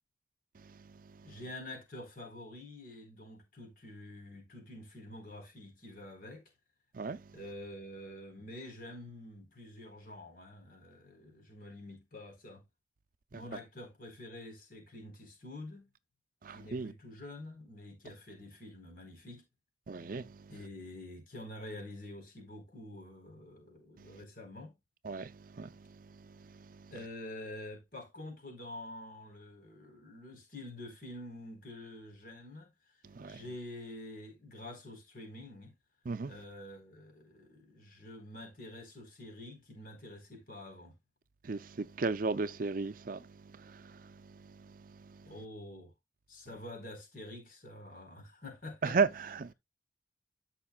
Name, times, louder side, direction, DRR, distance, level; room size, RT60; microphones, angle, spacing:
voice 1, 1.2-6.4 7.3-12.6 13.3-15.9 16.5-19.4 20.5-24.7 26.9-32.7 33.3-35.7 36.3-40.9 45.2-45.9 46.3-49.0, left 1 dB, 50° left, 4.2 m, -47 dB
voice 2, 16.4-16.9 19.9-20.5 24.0-24.1 25.0-26.9 33.1-33.4 36.1-36.3 41.4-45.3 48.8-49.5, right 4 dB, 50° right, 0.5 m, -36 dB
13.0 x 5.8 x 2.3 m
head